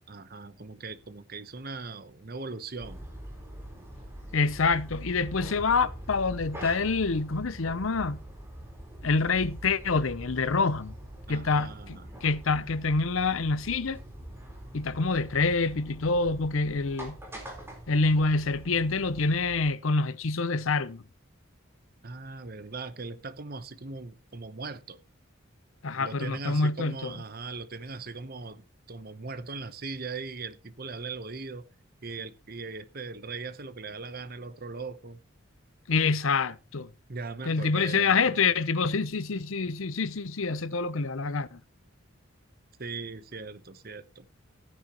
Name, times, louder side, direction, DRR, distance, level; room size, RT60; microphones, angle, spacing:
voice 1, 0.1-3.1 11.3-12.1 22.0-25.0 26.0-31.7 32.0-35.2 37.1-38.5 42.8-44.2, right 4 dB, 45° right, 0.9 m, -39 dB
sound 1, 2.8-19.7, right 1 dB, 10° right, 4.1 m, -43 dB
voice 2, 4.3-8.2 9.0-10.9 11.3-14.0 14.7-17.2 17.9-21.0 25.8-27.1 35.9-36.9 37.4-41.6, left 4 dB, 75° left, 0.7 m, -26 dB
14.5 x 9.9 x 3.0 m
head